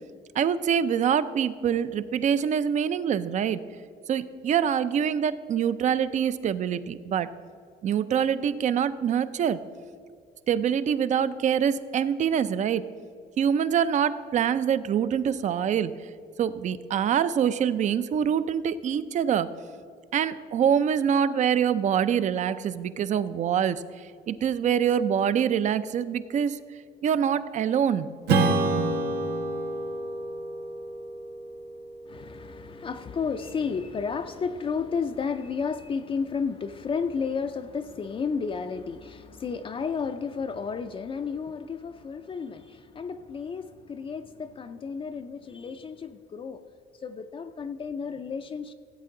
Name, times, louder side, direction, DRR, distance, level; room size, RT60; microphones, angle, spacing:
voice 1, 0.4-3.6 4.1-7.3 7.8-9.6 10.5-12.9 13.4-15.9 16.4-19.5 20.1-23.8 24.3-26.6 27.0-28.1, right 8 dB, 45° right, 0.5 m, -25 dB
Strum, 28.3-33.2, right 3 dB, 80° right, 1.2 m, -28 dB
voice 2, 32.1-46.6 47.0-48.7, left 5 dB, 30° left, 0.5 m, -32 dB
15.5 x 8.2 x 3.8 m
cardioid pair, 110°, 17 cm